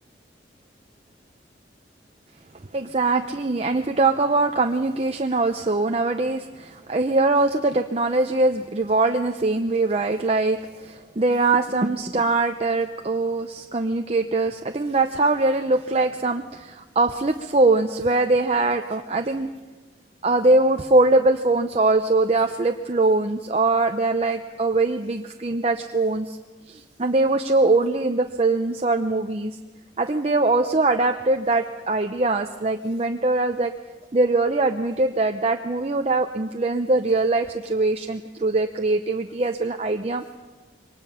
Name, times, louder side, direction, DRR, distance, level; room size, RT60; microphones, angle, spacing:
voice 1, 2.7-19.5 20.2-26.4 26.7-29.6 30.0-33.7 34.1-40.2, right 2 dB, 35° right, 5 dB, 0.7 m, -22 dB
23.5 x 20.0 x 5.7 m, 1.3 s
head